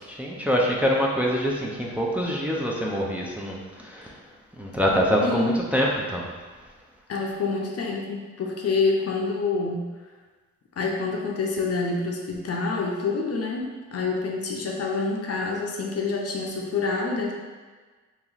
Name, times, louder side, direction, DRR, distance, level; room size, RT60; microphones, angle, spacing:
voice 1, 0.1-4.1 4.6-6.3, equal, 5° right, -3 dB, 0.6 m, -25 dB
voice 2, 5.2-5.6 7.1-9.9 10.8-17.3, left 4 dB, 50° left, 0 dB, 0.7 m, -27 dB
3.0 x 2.9 x 3.9 m, 1.4 s
cardioid pair, 75°, 31 cm